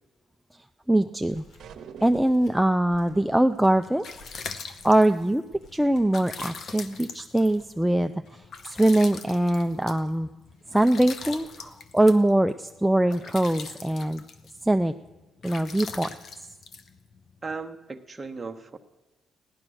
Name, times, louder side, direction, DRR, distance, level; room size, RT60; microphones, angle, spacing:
voice 1, 0.9-1.5 2.0-4.1 4.8-5.4 5.7-10.3 10.7-14.2 14.6-14.9 15.4-16.1, right 1 dB, 5° right, 6 dB, 0.4 m, -22 dB
sound 1, 1.3-1.7 2.0-6.5 6.8-7.0 7.4-7.8 8.2-9.0 9.4-10.0 10.5-10.9 11.2-11.8, left 1 dB, 80° left, 3.4 m, -56 dB
sound 2, 1.6-2.6, right 7 dB, 65° right, 1.0 m, -44 dB
sound 3, 3.8-17.5, left 5 dB, 60° left, 1.0 m, -42 dB
voice 2, 17.4-18.8, right 4 dB, 25° right, 4 dB, 1.0 m, -36 dB
15.5 x 11.0 x 6.3 m, 1.1 s
cardioid pair, 90°, 0 cm